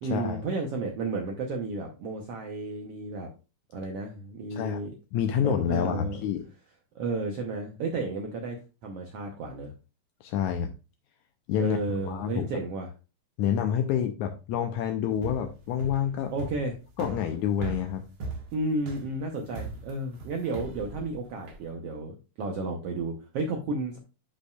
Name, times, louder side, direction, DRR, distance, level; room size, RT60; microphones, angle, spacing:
voice 1, 0.0-3.3 3.7-4.9 5.4-6.2 6.9-9.7 11.6-12.9 16.3-16.7 18.5-24.0, right 3 dB, 80° right, 2 dB, 1.3 m, -32 dB
voice 2, 5.1-6.4 10.2-10.7 11.5-11.8 12.0-12.5 13.4-16.3 17.0-18.0, left 9 dB, 85° left, 6 dB, 1.7 m, -28 dB
sound 1, 15.1-21.7, right 2 dB, 55° right, 1.7 m, -39 dB
10.0 x 5.4 x 2.3 m, 0.31 s
omnidirectional pair, 3.9 m